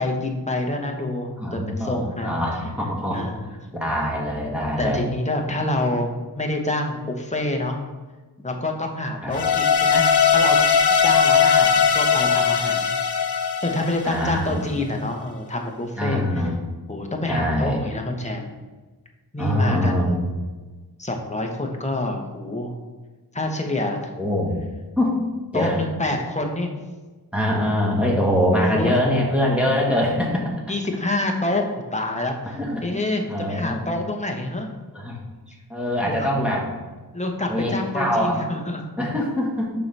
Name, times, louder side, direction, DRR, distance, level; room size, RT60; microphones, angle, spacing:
voice 1, 0.0-2.4 3.1-3.6 4.8-7.8 8.4-10.1 10.3-10.6 11.0-12.9 13.6-16.4 16.9-18.5 19.3-20.1 21.0-22.7 23.3-24.0 25.5-26.7 28.6-28.9 30.7-31.6 31.9-34.7 36.0-36.3 37.1-38.8, left 2 dB, 15° left, 2 dB, 1.0 m, -27 dB
voice 2, 1.4-3.3 3.7-5.0 9.2-9.3 14.0-14.6 16.0-16.5 17.3-17.8 19.4-20.3 24.2-24.5 25.0-25.1 25.5-25.8 27.3-30.5 32.4-32.8 33.3-33.9 34.9-35.2 35.7-36.7 37.5-38.4 39.0-39.7, equal, 5° right, -4 dB, 1.8 m, -23 dB
sound 1, 9.3-14.5, left 6 dB, 75° left, 0.6 m, -19 dB
6.8 x 5.4 x 3.4 m, 1.3 s
wide cardioid pair, 80°, 40 cm